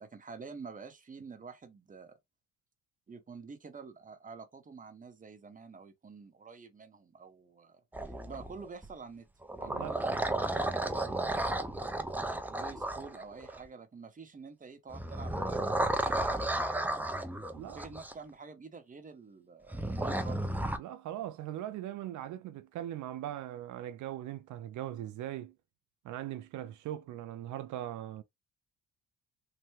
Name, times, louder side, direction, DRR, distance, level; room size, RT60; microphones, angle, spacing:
voice 1, 0.0-2.2 3.1-9.3 9.6-11.9 12.5-17.1 17.7-20.4, right 5 dB, 25° right, 0.8 m, -48 dB
sound 1, 7.9-8.9 9.4-13.7 14.9-18.1 19.7-20.8, right 1 dB, 5° right, 0.4 m, -33 dB
voice 2, 9.6-10.0 17.5-17.8 20.8-25.5 26.0-28.2, right 12 dB, 75° right, 0.5 m, -40 dB
3.3 x 2.2 x 3.1 m
cardioid pair, 90°, 30 cm